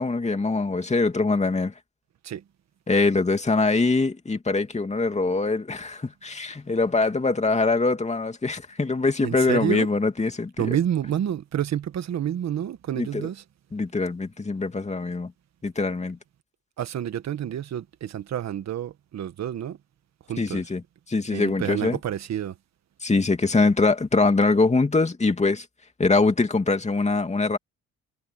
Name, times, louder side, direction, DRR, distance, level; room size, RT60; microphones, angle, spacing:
voice 1, 0.0-1.7 2.9-10.7 13.0-13.3 13.7-15.3 15.6-16.2 20.4-20.8 21.1-22.0 23.0-25.6 26.0-27.6, left 3 dB, 20° left, 2.6 m, -23 dB
voice 2, 9.2-9.9 10.6-13.4 16.8-19.8 20.3-20.6 21.3-22.6, right 10 dB, 60° right, 1.6 m, -29 dB
cardioid pair, 90°, 30 cm